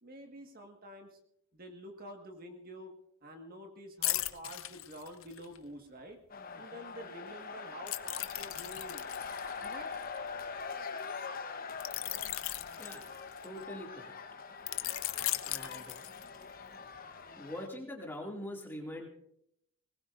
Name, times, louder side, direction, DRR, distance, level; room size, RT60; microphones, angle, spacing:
voice 1, 0.0-1.2 1.5-2.9 3.2-6.2 6.6-9.0 9.6-9.9, equal, 40° right, 3 dB, 1.8 m, -48 dB
sound 1, 4.0-5.6 7.9-10.6 11.8-13.6 14.7-16.5 16.9-17.1, left 16 dB, 65° left, 0.7 m, -37 dB
sound 2, 6.3-17.7, left 5 dB, 40° left, 1.1 m, -43 dB
voice 2, 13.4-14.2 15.5-16.0 17.4-19.1, left 1 dB, 10° left, 0 dB, 2.4 m, -43 dB
21.0 x 19.5 x 2.6 m, 0.72 s
head